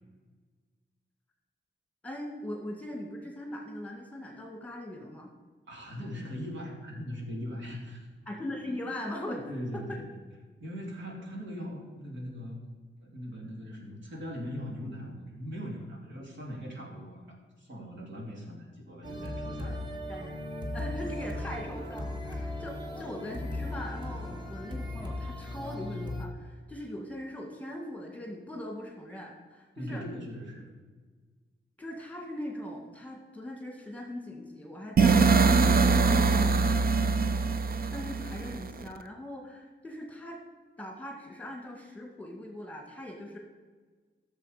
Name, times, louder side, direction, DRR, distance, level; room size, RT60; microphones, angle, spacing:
voice 1, 2.0-5.3 8.3-10.0 19.6-19.8 20.1-20.4 20.7-30.0 31.8-37.2 37.9-40.4 40.8-43.4, left 1 dB, 5° left, 0 dB, 1.9 m, -40 dB
voice 2, 5.7-8.1 8.6-8.8 9.5-10.2 10.6-12.6 13.0-19.8 29.8-30.6, equal, 70° right, -1 dB, 3.1 m, -40 dB
sound 1, 19.0-26.2, left 1 dB, 25° right, 1.5 m, -37 dB
sound 2, 35.0-38.9, right 4 dB, 50° right, 0.6 m, -23 dB
15.5 x 6.9 x 5.0 m, 1.4 s
wide cardioid pair, 160°, 20 cm